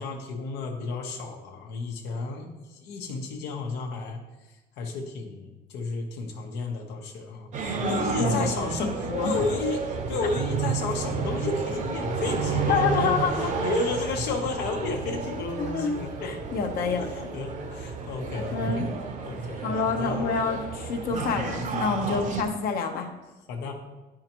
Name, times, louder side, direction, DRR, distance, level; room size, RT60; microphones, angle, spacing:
voice 1, 0.0-4.2 4.8-13.1 13.4-16.3 16.8-18.9 19.2-20.3 22.1-22.3 23.5-23.7, left 4 dB, 85° left, 3 dB, 1.1 m, -32 dB
sound 1, 7.5-22.4, right 5 dB, 45° right, 0.9 m, -31 dB
voice 2, 7.8-8.5 8.8-9.3 12.7-13.5 15.6-15.9 16.2-17.3 18.5-18.8 19.6-23.1, left 5 dB, 60° left, 4 dB, 0.9 m, -28 dB
8.9 x 4.8 x 3.0 m, 1.1 s
cardioid pair, 110°, 17 cm